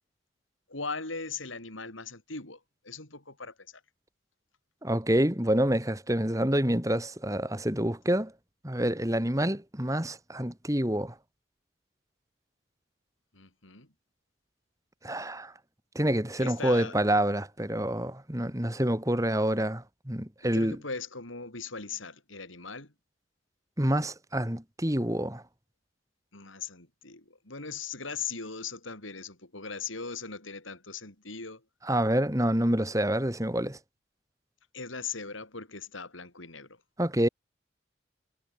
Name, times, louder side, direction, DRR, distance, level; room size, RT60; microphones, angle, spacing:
voice 1, 0.7-3.8 13.3-13.9 16.4-17.0 20.5-22.9 26.3-31.6 34.7-36.8, left 5 dB, 85° left, 6.3 m, -39 dB
voice 2, 4.8-8.3 8.6-11.1 15.0-15.5 15.9-20.8 23.8-25.4 31.9-33.8 37.0-37.3, right 1 dB, 15° right, 2.7 m, -27 dB
head